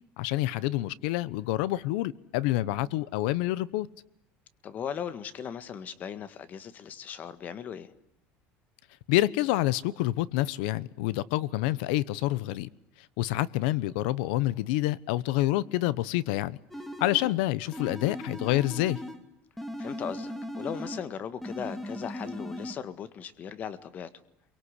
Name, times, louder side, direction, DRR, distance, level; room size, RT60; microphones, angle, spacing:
voice 1, 0.2-3.9 9.1-12.7 13.2-16.6 17.0-19.0, left 16 dB, 90° left, 1.0 m, -27 dB
voice 2, 4.6-7.9 19.8-24.1, left 8 dB, 35° left, 1.7 m, -38 dB
sound 1, 16.7-17.4 17.7-19.2 19.6-21.1 21.4-22.7, left 1 dB, 5° left, 2.5 m, -38 dB
29.0 x 23.5 x 8.3 m
cardioid pair, 155°, 5 cm